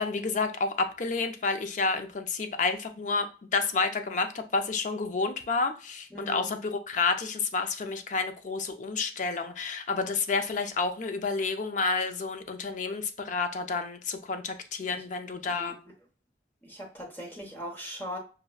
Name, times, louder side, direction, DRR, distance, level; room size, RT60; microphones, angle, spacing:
voice 1, 0.0-3.3 3.5-15.8, left 4 dB, 45° left, 0.4 m, -30 dB
voice 2, 6.1-6.5 15.4-15.7 16.6-18.2, equal, 10° left, 1.0 m, -39 dB
6.3 x 2.2 x 2.3 m
head